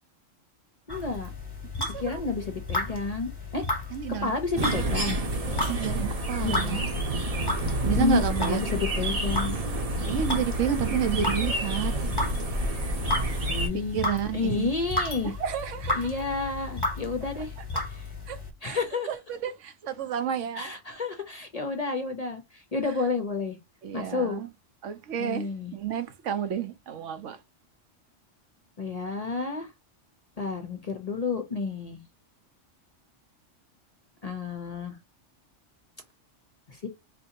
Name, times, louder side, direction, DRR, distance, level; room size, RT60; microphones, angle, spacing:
voice 1, 0.9-1.3 2.0-3.7 4.2-5.2 6.4-6.8 7.1-7.2 7.5-9.6 13.5-14.0 14.3-15.3 15.9-17.5 17.9-18.1 18.6-19.1 20.6-23.6 23.9-24.4 25.2-25.7 28.8-29.7 30.4-32.0 34.2-35.0 36.7-36.9, left 3 dB, 40° left, 0.6 m, -30 dB
sound 1, 0.9-18.5, left 2 dB, 20° left, 1.0 m, -34 dB
voice 2, 1.8-2.2 3.9-4.3 4.6-5.3 5.5-6.9 7.2-7.4 7.8-8.6 10.1-12.0 13.7-14.7 15.2-16.1 17.7-17.8 18.3-18.8 19.1-20.7 23.8-24.5 24.8-25.5 25.7-27.4, right 8 dB, 75° right, 1.0 m, -31 dB
sound 2, 4.5-13.7, right 1 dB, 35° right, 0.8 m, -29 dB
4.3 x 2.7 x 2.7 m
omnidirectional pair, 1.3 m